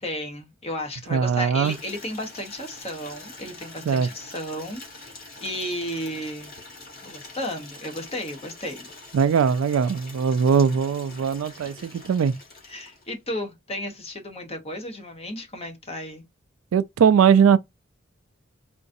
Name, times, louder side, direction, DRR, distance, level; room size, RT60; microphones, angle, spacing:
voice 1, 0.0-6.5 7.0-8.9 12.6-16.3, left 1 dB, 30° left, 0.9 m, -33 dB
voice 2, 1.1-1.8 3.9-4.1 9.1-12.3 16.7-17.6, right 7 dB, 85° right, 0.3 m, -20 dB
Water tap faucet / Liquid, 1.6-13.2, left 2 dB, 45° left, 1.5 m, -44 dB
3.8 x 2.5 x 2.6 m
head